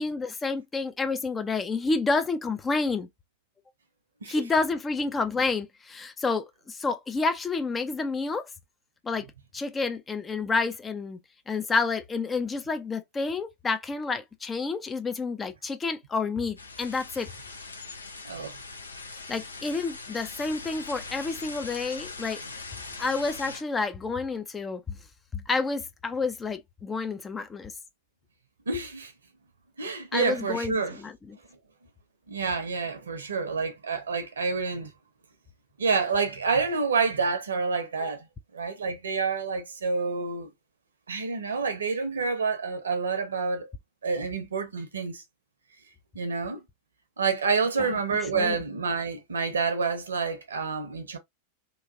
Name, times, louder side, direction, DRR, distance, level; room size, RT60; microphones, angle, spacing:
voice 1, 0.0-3.1 4.3-8.5 9.0-9.3 9.5-11.2 11.5-17.3 19.3-22.4 23.0-25.0 25.3-27.7 30.1-31.4 47.8-47.9 48.3-48.6, left 4 dB, 15° left, 0.5 m, -29 dB
sound 1, 16.6-23.6, left 3 dB, 75° left, 0.6 m, -41 dB
voice 2, 18.2-18.6 28.7-29.1 29.8-31.0 32.3-34.9 35.8-38.3 38.5-40.5 41.1-43.7 44.0-45.2 46.1-46.6 47.2-51.2, right 4 dB, 70° right, 0.8 m, -28 dB
3.1 x 2.5 x 2.4 m
figure-of-eight pair, 90°, 0 cm